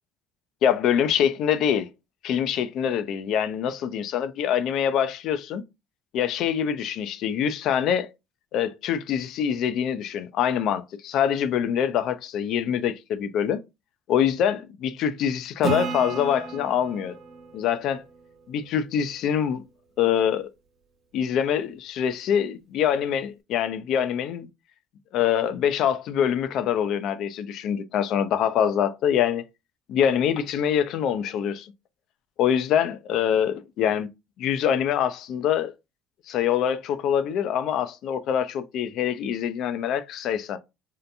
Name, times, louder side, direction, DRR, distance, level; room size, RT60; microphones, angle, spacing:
voice 1, 0.6-1.9 2.2-5.6 6.1-8.1 8.5-13.6 14.1-17.2 17.5-18.0 18.5-19.6 20.0-20.5 21.1-24.5 25.1-29.4 29.9-31.7 32.4-34.1 34.4-35.7 36.3-40.6, left 9 dB, 65° left, 0.4 m, -24 dB
Acoustic guitar / Strum, 15.6-19.1, right 4 dB, 50° right, 0.8 m, -34 dB
2.8 x 2.1 x 2.5 m
supercardioid pair, 80°, 0 cm